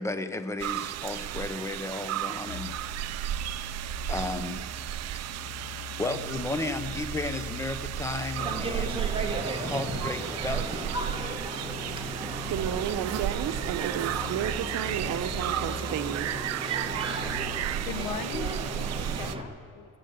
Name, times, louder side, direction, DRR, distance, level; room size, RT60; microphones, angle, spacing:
voice 1, 0.0-3.5 4.1-4.7 6.0-9.1 9.6-11.0, left 2 dB, 10° left, 10 dB, 0.6 m, -34 dB
sound 1, 0.6-19.4, right 12 dB, 55° right, 0.4 m, -34 dB
sound 2, 2.5-18.4, left 4 dB, 60° left, 3.3 m, -43 dB
sound 3, 8.4-19.4, right 2 dB, 15° right, 1.2 m, -35 dB
voice 2, 12.5-16.3, right 10 dB, 75° right, 11 dB, 0.8 m, -32 dB
voice 3, 17.9-20.0, left 7 dB, 80° left, 10 dB, 1.1 m, -39 dB
18.5 x 7.9 x 8.0 m, 2.3 s
cardioid pair, 145°, 32 cm